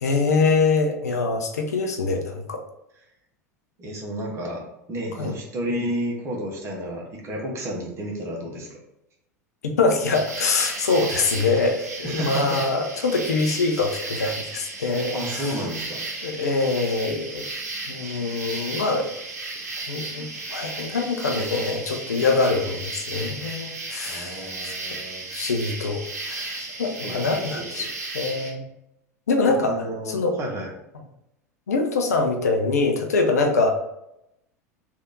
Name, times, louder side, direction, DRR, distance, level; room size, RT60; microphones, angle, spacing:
voice 1, 0.0-2.6 5.2-5.3 9.6-15.5 16.2-17.5 17.9-19.1 19.9-24.7 25.3-27.9 28.1-28.6 29.3-30.4 31.7-33.8, left 3 dB, 70° left, 3 dB, 0.6 m, -24 dB
voice 2, 3.8-4.6 4.9-8.8 12.0-12.6 15.1-16.0 20.2-20.3 24.1-25.3 27.0-27.9 29.6-30.7, equal, 30° right, -1 dB, 1.2 m, -31 dB
sound 1, 10.1-28.5, right 3 dB, 70° right, 0.9 m, -34 dB
3.4 x 2.6 x 3.8 m, 0.84 s
figure-of-eight pair, 80°, 9 cm